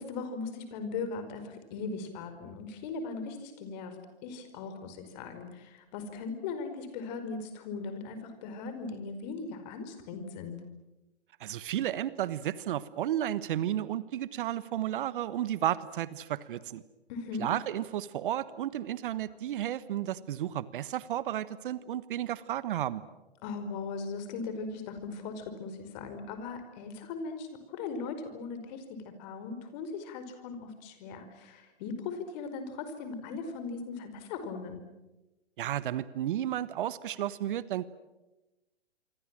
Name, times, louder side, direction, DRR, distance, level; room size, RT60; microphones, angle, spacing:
voice 1, 0.0-4.0 4.2-10.6 17.1-17.5 23.4-34.8, left 4 dB, 40° left, 9 dB, 5.1 m, -39 dB
voice 2, 11.4-16.8 17.4-23.0 35.6-37.8, right 12 dB, 55° right, 16 dB, 1.3 m, -33 dB
27.0 x 24.5 x 7.6 m, 1.0 s
hypercardioid pair, 120°, 32 cm